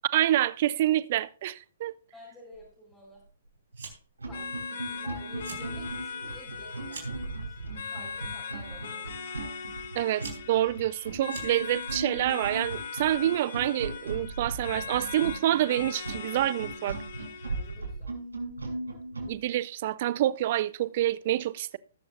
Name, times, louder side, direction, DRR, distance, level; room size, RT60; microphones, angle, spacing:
voice 1, 0.1-1.9 10.0-17.0 19.2-21.8, right 13 dB, 45° right, 0.5 m, -27 dB
voice 2, 2.1-3.3 4.2-9.3 17.4-18.2, equal, 10° left, 4.9 m, -50 dB
Fire, 3.7-4.2 4.5-5.0 5.3-5.7 6.1-7.3 8.0-8.4 9.3-9.4 9.9-11.9, right 5 dB, 65° right, 4.2 m, -44 dB
sound 1, 3.7-3.9 4.2-19.4, right 2 dB, 90° right, 5.5 m, -38 dB
sound 2, 4.3-17.9, left 6 dB, 55° left, 1.3 m, -40 dB
19.5 x 7.0 x 2.6 m
hypercardioid pair, 135°, 0 cm